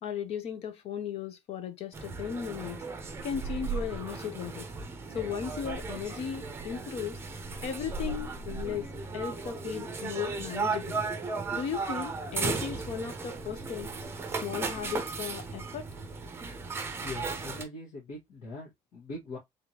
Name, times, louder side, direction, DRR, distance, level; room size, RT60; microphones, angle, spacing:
voice 1, 0.0-2.8 3.2-4.7 5.1-7.2 7.6-11.0 11.5-13.9 14.4-15.9, left 8 dB, 50° left, 0.9 m, -36 dB
sound 1, 1.9-17.6, right 4 dB, 20° right, 0.7 m, -36 dB
voice 2, 17.0-19.4, left 2 dB, 70° left, 1.8 m, -41 dB
3.7 x 3.5 x 2.9 m
cardioid pair, 175°, 13 cm